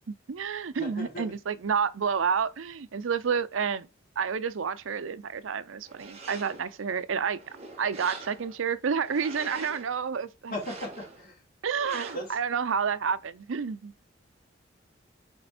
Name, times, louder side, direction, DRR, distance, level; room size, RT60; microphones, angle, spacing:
voice 1, 0.1-3.9 4.2-7.4 7.8-10.5 11.6-13.9, right 6 dB, 85° right, 0.5 m, -29 dB
voice 2, 0.8-1.3 10.5-11.4 12.1-12.4, equal, 50° left, 3.1 m, -37 dB
sound 1, 5.8-6.8 7.3-8.6 9.0-9.9 10.5-11.3 11.8-12.4, right 3 dB, 35° right, 1.9 m, -44 dB
6.6 x 4.3 x 4.2 m
head